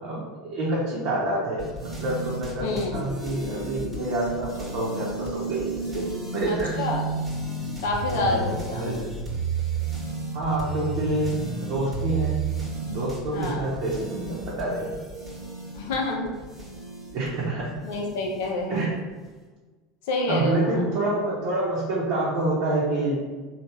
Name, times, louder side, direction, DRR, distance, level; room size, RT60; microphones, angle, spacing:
voice 1, 0.0-5.7 5.9-6.0 6.3-6.8 8.1-8.5 8.7-9.1 10.3-11.3 11.6-12.4 12.9-14.9 17.1-17.7 18.7-18.9 20.3-23.2, right 2 dB, 55° right, -7 dB, 0.8 m, -27 dB
sound 1, 1.6-18.8, right 3 dB, 15° right, 1.2 m, -33 dB
voice 2, 2.6-3.0 6.4-7.0 7.8-8.8 13.3-13.6 15.7-16.3 17.8-18.9 20.1-20.9, left 2 dB, 65° left, 0 dB, 0.5 m, -27 dB
3.3 x 2.3 x 3.0 m, 1.3 s
hypercardioid pair, 80°, 0 cm